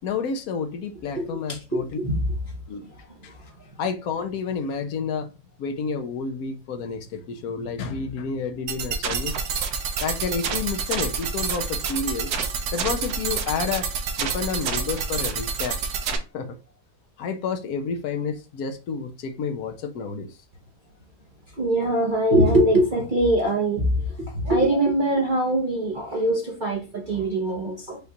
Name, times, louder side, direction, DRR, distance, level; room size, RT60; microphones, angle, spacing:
voice 1, 0.0-2.0 2.7-2.8 3.8-5.3 5.6-9.3 10.0-12.3 12.7-13.9 14.2-15.8 16.3-16.6 17.2-20.3, left 5 dB, 70° left, 1.1 m, -30 dB
voice 2, 1.2-2.2 21.6-23.9 24.2-28.0, right 1 dB, 40° right, 0.8 m, -22 dB
sound 1, 8.7-16.2, right 5 dB, 70° right, 1.3 m, -28 dB
5.6 x 2.4 x 4.0 m
omnidirectional pair, 1.8 m